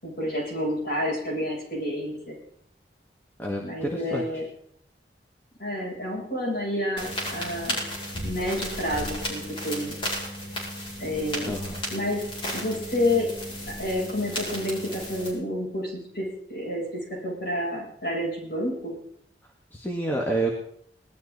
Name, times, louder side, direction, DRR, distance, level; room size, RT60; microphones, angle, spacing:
voice 1, 0.0-2.3 3.6-4.4 5.6-7.8 8.2-10.0 11.0-11.5 11.9-13.3 13.7-19.0, left 1 dB, 60° left, -5 dB, 7.9 m, -29 dB
voice 2, 3.4-4.3 11.5-11.8 19.7-20.5, right 2 dB, 10° left, -1 dB, 1.7 m, -28 dB
sound 1, 7.0-15.3, equal, 30° left, 5.8 m, -34 dB
19.5 x 12.5 x 4.2 m, 0.66 s
head